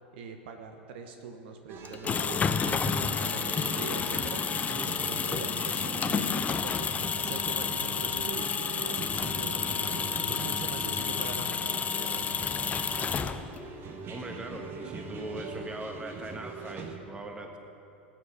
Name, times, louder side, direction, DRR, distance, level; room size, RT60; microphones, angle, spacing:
voice 1, 0.1-12.4, right 5 dB, 65° right, 5 dB, 1.0 m, -43 dB
sound 1, 1.7-17.0, right 4 dB, 40° right, 1.3 m, -42 dB
sound 2, 1.8-13.7, left 6 dB, 25° left, 0.6 m, -30 dB
voice 2, 14.1-17.6, right 1 dB, 15° right, 4 dB, 1.6 m, -40 dB
18.0 x 8.9 x 4.9 m, 2.7 s
hypercardioid pair, 90°, 6 cm